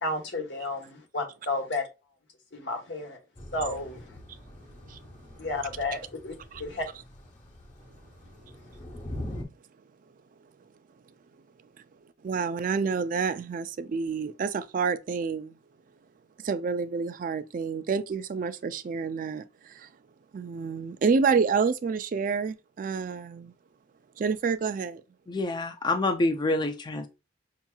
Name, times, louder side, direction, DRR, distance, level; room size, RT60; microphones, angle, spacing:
voice 1, 0.0-1.8 2.5-3.2 3.5-4.0 5.4-6.3 6.6-6.9, left 2 dB, 75° left, 1.1 m, -32 dB
Thunder / Rain, 3.4-9.4, left 1 dB, 40° left, 1.1 m, -43 dB
voice 2, 12.2-15.6 16.4-19.9 20.3-23.5 24.2-25.0, right 5 dB, 45° right, 0.3 m, -28 dB
voice 3, 25.3-27.1, left 2 dB, 25° left, 0.4 m, -27 dB
5.6 x 2.8 x 2.3 m
head